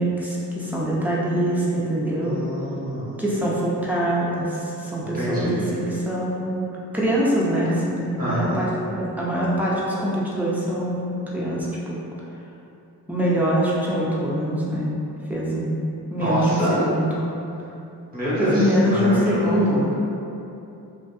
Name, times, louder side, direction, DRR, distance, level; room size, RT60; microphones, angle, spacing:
voice 1, 0.0-2.4 3.2-6.6 6.9-12.0 13.1-14.9 15.3-15.8 16.1-17.1 18.4-19.8, right 1 dB, 5° right, -6 dB, 0.6 m, -24 dB
voice 2, 2.2-3.1 5.1-5.6 8.2-8.6 16.2-16.8 18.1-20.0, equal, 20° right, -9 dB, 1.2 m, -25 dB
2.5 x 2.5 x 2.3 m, 2.7 s
cardioid pair, 40°, 41 cm